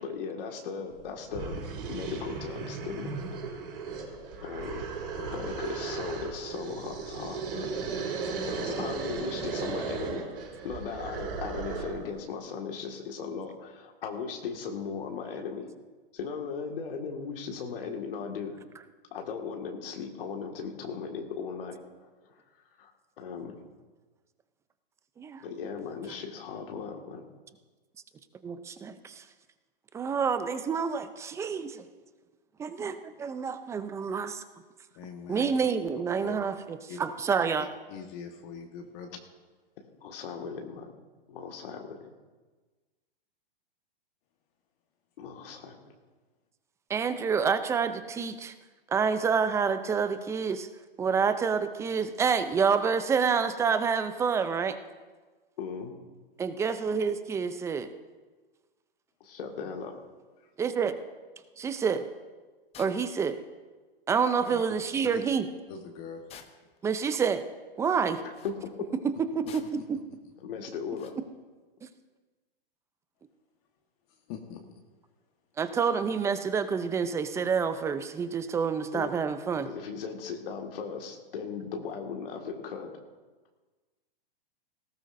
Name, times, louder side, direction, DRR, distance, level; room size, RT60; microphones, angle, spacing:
voice 1, 0.0-1.6 1.9-3.1 4.4-4.8 5.2-7.7 8.4-10.2 10.6-15.7 16.1-18.6 19.1-21.8 22.3-22.4 22.8-22.9 23.2-23.6 25.4-27.2 40.0-40.9 41.3-42.1 45.2-45.8 55.6-55.9 59.2-59.9 68.4-68.7 70.4-71.1 78.9-79.1 79.6-82.9, left 5 dB, 70° left, 2 dB, 1.9 m, -37 dB
sound 1, 0.9-1.0 1.3-12.1, right 4 dB, 70° right, 5.0 m, -36 dB
voice 2, 5.1-5.6 34.9-35.6 36.2-36.4 36.9-37.0 37.9-39.2 60.4-60.5 64.4-64.6 65.0-65.1 65.7-66.2 74.1-74.8, left 6 dB, 40° left, 3 dB, 1.4 m, -43 dB
voice 3, 28.4-29.2 29.9-31.9 32.6-34.4 35.3-37.7 46.9-48.5 48.9-50.7 51.0-54.8 56.4-57.9 60.6-61.0 61.6-62.0 62.8-63.4 64.1-65.4 66.8-67.4 67.8-68.2 69.2-70.0 71.8-71.9 75.6-79.7, right 6 dB, 10° right, 11 dB, 0.4 m, -28 dB
sound 2, 62.7-63.0 64.1-64.2 64.5-64.6 66.3-66.8 68.2-68.6 69.5-69.9 71.0-71.2, left 8 dB, 20° left, 0.9 m, -50 dB
18.5 x 17.0 x 2.6 m, 1.3 s
hypercardioid pair, 130°, 29 cm